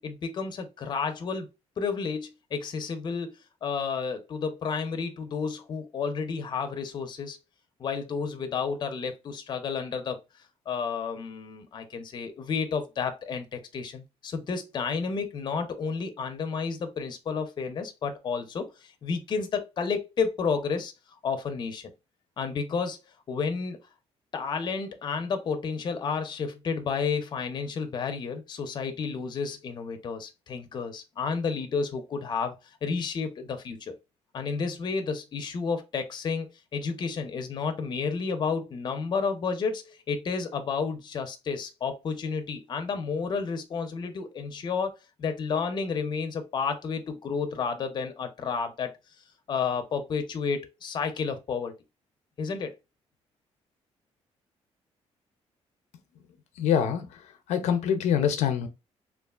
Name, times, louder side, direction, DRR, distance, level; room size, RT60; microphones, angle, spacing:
voice 1, 0.0-1.5 1.8-3.3 3.6-7.4 7.8-10.2 10.7-20.9 21.2-21.8 22.4-23.0 23.3-23.8 24.3-32.6 32.8-33.9 34.3-44.9 45.2-48.9 49.5-51.7 52.4-52.7, left 5 dB, 40° left, 0.5 m, -31 dB
voice 2, 56.6-58.7, left 8 dB, 90° left, 0.5 m, -25 dB
3.1 x 2.3 x 2.3 m
cardioid pair, 135°, 11 cm